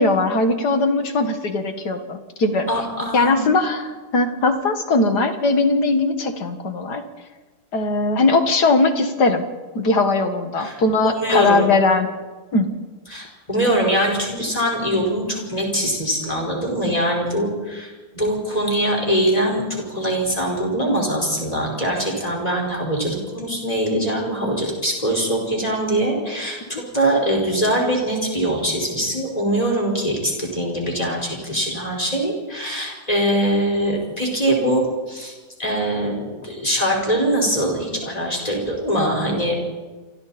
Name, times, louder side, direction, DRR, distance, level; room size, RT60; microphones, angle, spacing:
voice 1, 0.0-2.7 3.1-7.0 7.7-9.4 9.7-12.1 12.5-12.7 26.7-26.8, left 3 dB, 80° left, 6 dB, 2.5 m, -19 dB
voice 2, 2.7-3.5 10.6-11.7 13.1-35.3 35.6-39.5, right 1 dB, 20° left, -1 dB, 5.3 m, -22 dB
28.5 x 26.0 x 4.4 m, 1.3 s
omnidirectional pair, 1.7 m